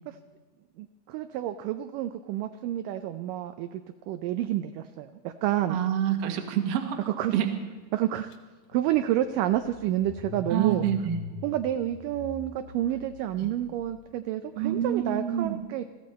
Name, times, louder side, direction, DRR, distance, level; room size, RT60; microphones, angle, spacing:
voice 1, 0.8-3.8 4.1-5.8 7.1-7.4 7.9-8.3 8.7-10.8 11.4-15.8, right 12 dB, 80° right, 9 dB, 2.0 m, -29 dB
voice 2, 5.7-7.6 10.5-11.2 13.4-13.5 14.5-15.6, right 10 dB, 60° right, 5 dB, 1.8 m, -27 dB
Car / Engine starting, 8.3-8.4 8.7-13.9, left 5 dB, 75° left, 1.5 m, -43 dB
19.5 x 15.0 x 4.2 m, 1.4 s
omnidirectional pair, 4.3 m